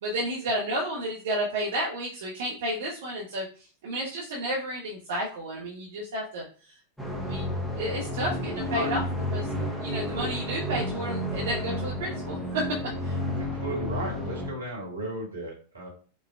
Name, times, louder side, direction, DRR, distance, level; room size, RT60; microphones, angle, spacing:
voice 1, 0.0-6.8 7.3-9.0 9.3-9.5 9.8-12.6 13.0-13.2, right 1 dB, 60° right, -3 dB, 0.7 m, -32 dB
sound 1, 7.0-14.5, equal, 5° left, 0.7 m, -31 dB
voice 2, 13.2-15.9, right 1 dB, 80° right, -3 dB, 1.3 m, -35 dB
5.2 x 2.2 x 2.2 m, 0.40 s
figure-of-eight pair, 90°, 0 cm